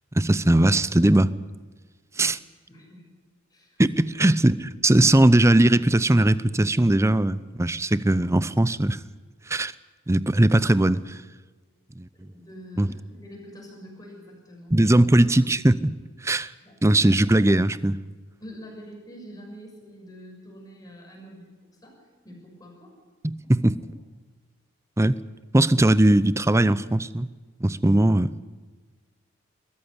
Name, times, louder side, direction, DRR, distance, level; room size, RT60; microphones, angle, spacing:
voice 1, 0.1-1.3 2.2-2.4 3.8-9.0 9.5-9.7 10.1-11.2 12.0-12.1 12.8-12.9 14.7-15.9 16.2-16.5 16.8-18.0 23.2-23.8 25.0-25.2 25.5-27.3 27.6-28.3, right 1 dB, 15° right, 17 dB, 0.6 m, -19 dB
voice 2, 2.7-3.1 3.5-4.0 12.1-15.0 16.6-17.0 18.4-22.9, equal, 20° left, 0 dB, 6.6 m, -46 dB
22.0 x 14.5 x 9.8 m, 1.4 s
head